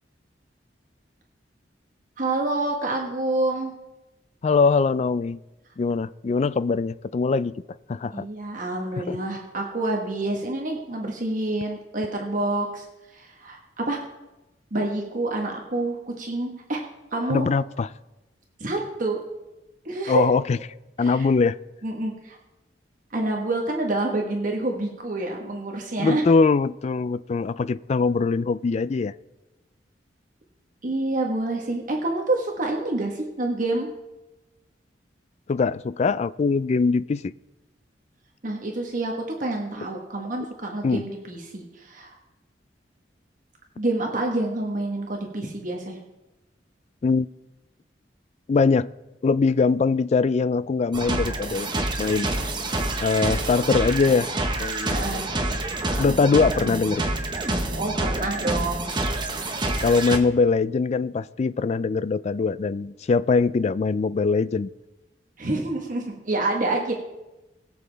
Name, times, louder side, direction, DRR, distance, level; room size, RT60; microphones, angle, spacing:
voice 1, 2.2-3.7 8.1-14.0 14.7-16.8 17.1-17.5 18.6-19.2 19.8-20.3 21.0-21.3 21.8-22.4 23.1-26.2 30.8-33.9 38.4-42.2 43.8-46.0 54.8-55.3 57.7-58.9 65.4-66.9, right 2 dB, 50° right, 1 dB, 1.3 m, -27 dB
voice 2, 4.4-5.4 5.8-7.5 7.9-8.3 9.1-9.2 17.3-17.9 20.1-20.6 21.0-21.6 26.0-29.1 35.5-37.3 40.8-41.0 47.0-47.3 48.5-48.9 49.2-51.7 52.0-52.3 53.0-54.3 54.6-54.9 56.0-57.0 59.8-64.7, left 4 dB, 40° left, 17 dB, 0.3 m, -22 dB
sound 1, 50.9-60.2, right 2 dB, 25° right, 1.1 m, -27 dB
21.5 x 7.2 x 3.4 m, 1.0 s
head